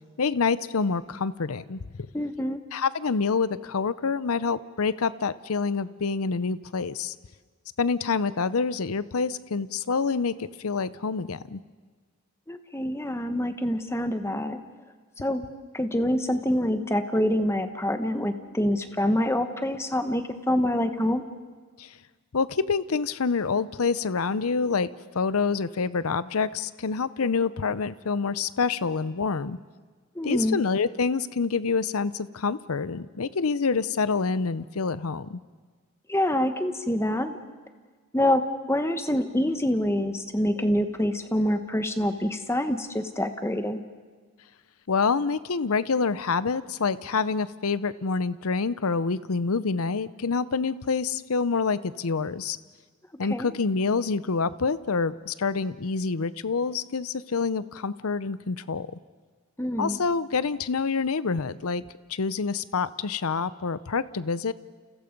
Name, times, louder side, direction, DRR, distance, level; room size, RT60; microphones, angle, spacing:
voice 1, 0.2-1.8 2.7-7.1 7.8-11.6 21.8-21.9 22.3-29.6 30.2-35.4 44.9-52.6 53.2-58.9 59.8-61.8 62.1-64.5, left 4 dB, 80° left, 16 dB, 0.7 m, -27 dB
voice 2, 2.1-2.6 12.5-14.6 15.2-15.4 15.7-21.2 30.1-30.6 36.1-37.3 38.1-38.4 38.7-43.8 53.3-53.5 59.6-60.0, left 1 dB, 10° left, 8 dB, 1.2 m, -26 dB
29.5 x 29.0 x 5.3 m, 1.5 s
head